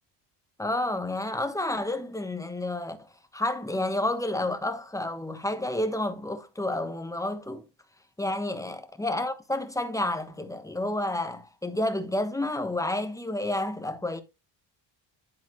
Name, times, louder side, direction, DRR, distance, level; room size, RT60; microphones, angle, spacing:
voice 1, 0.6-7.6 8.2-14.2, left 1 dB, 5° left, 1.1 m, -30 dB
11.0 x 4.1 x 3.1 m
cardioid pair, 100°, 46 cm